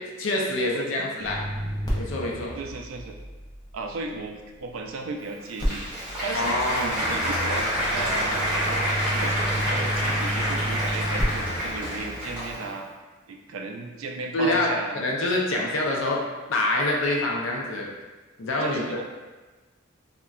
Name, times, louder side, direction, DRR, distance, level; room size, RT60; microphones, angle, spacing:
voice 1, 0.0-1.4 1.9-2.5 6.3-7.3 14.3-16.2 16.5-17.9 18.4-18.8, left 2 dB, 70° left, -1 dB, 0.4 m, -26 dB
sound 1, 1.2-4.4 5.6-12.5, equal, 20° left, 0.5 m, -32 dB
voice 2, 2.5-3.2 3.7-5.8 6.2-12.9 13.3-15.0 18.6-19.0, right 3 dB, 80° right, 3 dB, 0.4 m, -35 dB
Applause, 5.2-12.8, equal, 10° right, 1.3 m, -28 dB
3.7 x 2.1 x 2.2 m, 1.2 s
head